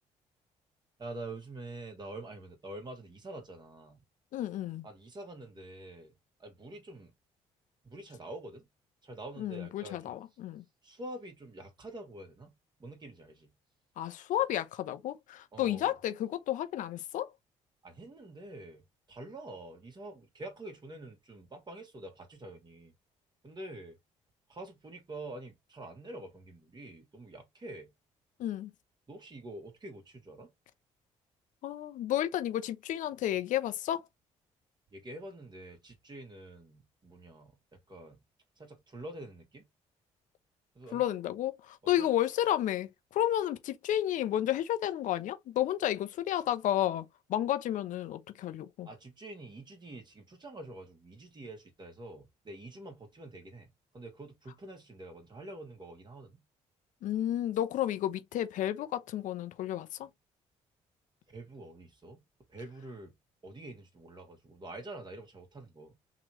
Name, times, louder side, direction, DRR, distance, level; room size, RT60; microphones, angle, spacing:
voice 1, 1.0-4.0 4.8-7.1 7.8-8.7 9.0-10.1 10.8-12.5 12.8-13.5 15.5-15.9 17.8-22.9 23.4-24.0 24.5-27.9 29.1-30.5 34.9-38.2 38.6-39.7 40.7-41.0 42.0-42.1 48.8-56.4 61.3-63.2 63.4-66.0, right 2 dB, 30° right, 2.1 m, -46 dB
voice 2, 4.3-4.9 9.4-10.6 14.0-17.3 28.4-28.7 31.6-34.1 40.9-48.9 57.0-60.1, left 12 dB, 70° left, 0.7 m, -32 dB
3.8 x 3.0 x 2.9 m
supercardioid pair, 65°, 14 cm